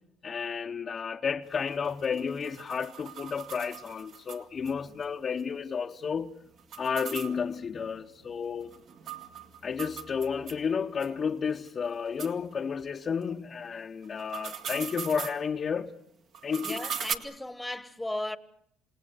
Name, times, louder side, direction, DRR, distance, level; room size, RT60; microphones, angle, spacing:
voice 1, 0.2-6.3 6.8-8.7 9.6-15.9 16.4-16.8, left 6 dB, 40° left, 0.9 m, -32 dB
sound 1, 1.5-4.7 5.0-5.1 5.4-5.5 6.6-10.6 11.0-11.1 11.7-11.8 12.2-12.3 14.0-15.4 16.3-17.1, right 7 dB, 60° right, 2.3 m, -40 dB
voice 2, 16.6-18.4, left 1 dB, 5° left, 1.2 m, -36 dB
28.0 x 18.5 x 8.1 m
supercardioid pair, 90°, 0 cm